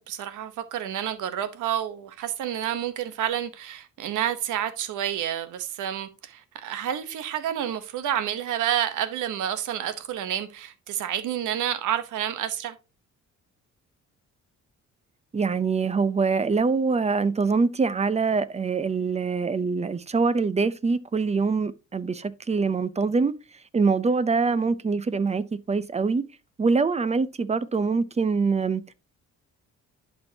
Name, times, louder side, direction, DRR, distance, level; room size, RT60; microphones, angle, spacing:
voice 1, 0.0-12.8, right 10 dB, 80° right, 1.0 m, -29 dB
voice 2, 15.3-23.3 23.7-26.2 26.6-28.9, right 4 dB, 20° right, 0.6 m, -24 dB
11.0 x 4.5 x 2.8 m
cardioid pair, 90°, 30 cm